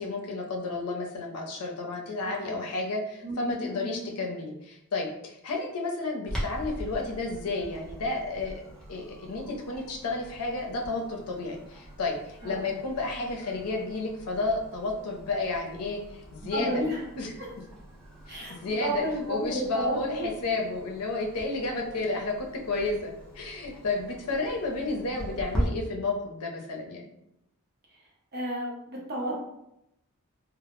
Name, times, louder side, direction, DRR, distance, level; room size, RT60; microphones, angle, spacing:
voice 1, 0.0-8.5 8.9-16.7 17.2-17.3 18.3-19.0 19.3-27.1, left 3 dB, 85° left, 0 dB, 0.5 m, -32 dB
voice 2, 2.2-2.6 3.2-4.1 12.4-12.6 16.5-17.0 17.4-17.5 18.3-20.3 27.9-29.4, right 1 dB, 45° right, -3 dB, 0.7 m, -33 dB
Clock, 6.3-25.6, equal, 5° left, 0.5 m, -41 dB
2.0 x 2.0 x 3.0 m, 0.82 s
head